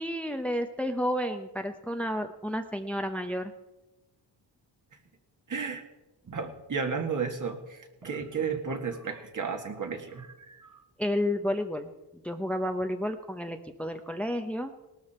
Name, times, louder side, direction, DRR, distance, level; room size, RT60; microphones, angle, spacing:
voice 1, 0.0-3.5 11.0-11.9 12.2-14.7, equal, 5° left, 6 dB, 0.9 m, -31 dB
voice 2, 5.5-5.8 6.3-10.8, right 5 dB, 45° right, 4 dB, 2.1 m, -33 dB
18.5 x 13.0 x 4.4 m, 1.0 s
cardioid pair, 90°, 43 cm